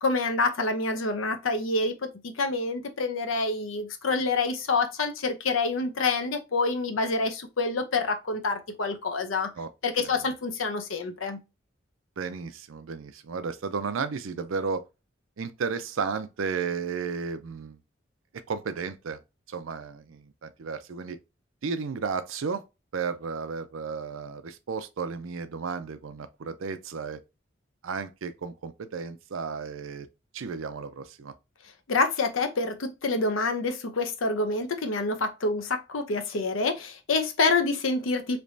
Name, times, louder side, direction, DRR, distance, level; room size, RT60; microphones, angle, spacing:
voice 1, 0.0-9.5 9.8-11.4 31.9-38.4, left 3 dB, 90° left, 0.7 m, -27 dB
voice 2, 12.2-14.8 15.4-17.8 18.5-19.2 19.5-21.2 21.6-22.6 22.9-27.2 27.8-30.1 30.3-31.3, right 5 dB, 85° right, 0.5 m, -33 dB
3.3 x 3.0 x 2.6 m
head